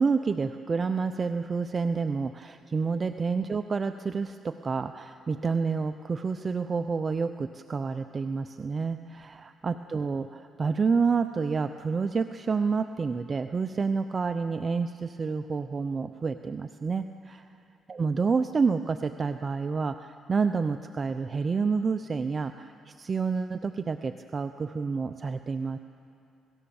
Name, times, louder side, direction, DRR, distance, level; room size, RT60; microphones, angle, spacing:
voice 1, 0.0-17.4 17.9-25.8, right 5 dB, 35° right, 9 dB, 0.6 m, -29 dB
27.5 x 18.0 x 7.1 m, 2.7 s
cardioid pair, 90°, 0 cm